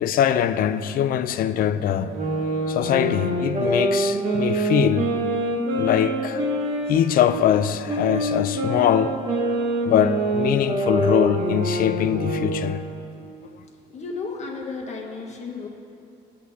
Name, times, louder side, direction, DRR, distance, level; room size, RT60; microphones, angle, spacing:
voice 1, 0.0-2.1 2.7-5.1 5.7-6.4 6.9-9.2 9.8-12.8, left 10 dB, 60° left, 0.5 m, -22 dB
sound 1, 2.0-7.4 7.9-12.8, right 1 dB, 50° right, 1.6 m, -25 dB
voice 2, 13.9-15.7, left 4 dB, 40° left, 1.5 m, -33 dB
15.5 x 8.3 x 2.8 m
cardioid pair, 110°, 17 cm